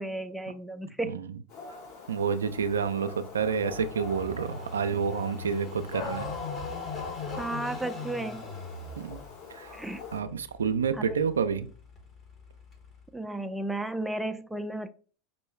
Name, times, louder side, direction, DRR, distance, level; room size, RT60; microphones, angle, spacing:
voice 1, 0.0-1.2 7.4-8.4 9.7-10.0 11.1-11.2 13.1-14.9, right 1 dB, 5° right, 0.3 m, -33 dB
voice 2, 1.0-1.4 2.1-6.3 9.0-9.2 9.5-9.8 10.1-11.7, right 6 dB, 90° right, 0.3 m, -29 dB
Dog, 1.5-10.2, left 5 dB, 55° left, 2.1 m, -41 dB
Car passing by / Idling, 2.5-13.1, left 2 dB, 30° left, 1.2 m, -43 dB
5.3 x 2.3 x 3.1 m
hypercardioid pair, 90°, 0 cm